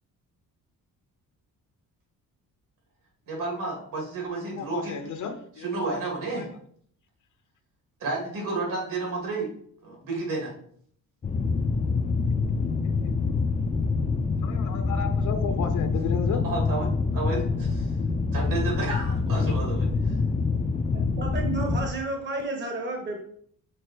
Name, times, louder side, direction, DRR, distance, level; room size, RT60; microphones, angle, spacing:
voice 1, 3.3-4.9 5.6-6.5 8.0-9.5 9.8-10.5 16.4-16.9 17.1-17.9 18.3-20.2, right 3 dB, 70° right, 3.0 m, -31 dB
voice 2, 4.4-6.0 6.4-6.5 12.8-13.3 14.4-16.4, left 6 dB, 60° left, 0.9 m, -33 dB
sound 1, 11.2-21.9, left 4 dB, 20° left, 0.5 m, -26 dB
voice 3, 20.9-23.2, right 2 dB, 35° right, 1.1 m, -31 dB
6.6 x 3.9 x 4.5 m
cardioid pair, 135°, 34 cm